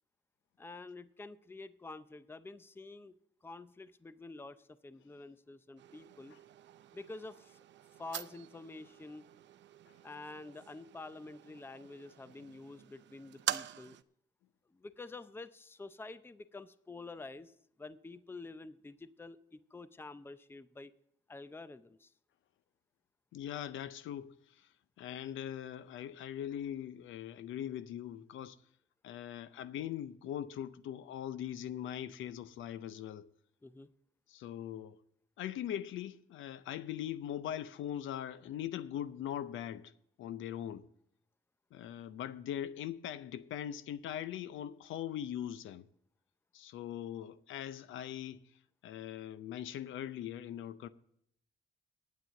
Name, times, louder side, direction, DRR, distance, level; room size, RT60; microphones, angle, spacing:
voice 1, 0.6-3.2 3.4-6.4 6.9-7.6 8.0-9.2 10.0-14.0 14.7-17.5 17.8-20.9 21.3-22.1 33.6-33.9, left 3 dB, 10° left, 0.5 m, -48 dB
sound 1, 5.8-14.0, right 12 dB, 65° right, 0.5 m, -45 dB
voice 2, 23.3-24.3 25.0-28.6 29.0-33.3 34.3-35.0 35.4-39.9 40.2-40.9 41.7-45.9 46.5-48.4 48.8-50.9, left 10 dB, 80° left, 0.6 m, -41 dB
9.2 x 9.1 x 6.9 m
cardioid pair, 90°, 20 cm